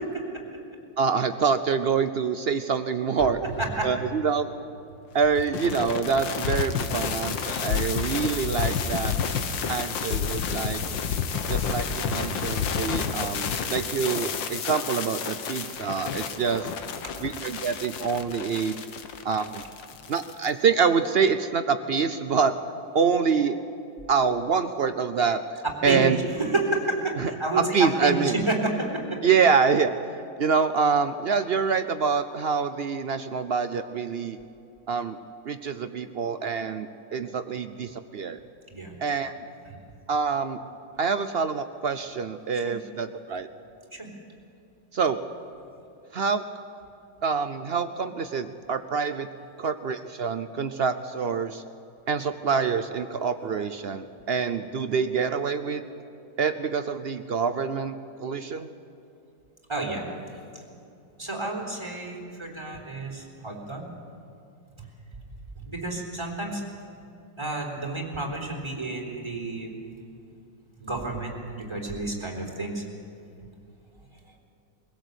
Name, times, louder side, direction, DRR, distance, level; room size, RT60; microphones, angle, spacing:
voice 1, 1.0-3.4 3.8-4.5 5.1-9.1 9.7-10.8 11.5-16.7 17.2-18.8 19.2-19.6 20.1-22.5 22.9-23.6 24.1-26.2 27.2-27.3 27.6-28.4 29.2-34.4 34.9-35.2 35.5-38.4 39.0-39.3 40.1-40.6 41.0-43.5 44.9-45.2 46.1-46.4 47.2-49.3 49.6-51.6 52.1-55.8 56.4-58.7, right 6 dB, 80° right, 9 dB, 0.5 m, -26 dB
voice 2, 3.4-3.9 25.8-26.0 26.4-29.2 38.7-39.0 39.7-39.8 42.7-42.8 43.9-44.1 59.7-60.0 61.2-63.9 64.8-64.9 65.6-66.6 67.4-69.7 70.8-72.8, right 2 dB, 15° right, -1 dB, 3.8 m, -30 dB
sound 1, 5.2-20.5, left 6 dB, 85° left, 1.9 m, -30 dB
23.0 x 16.5 x 8.1 m, 2.7 s
omnidirectional pair, 2.0 m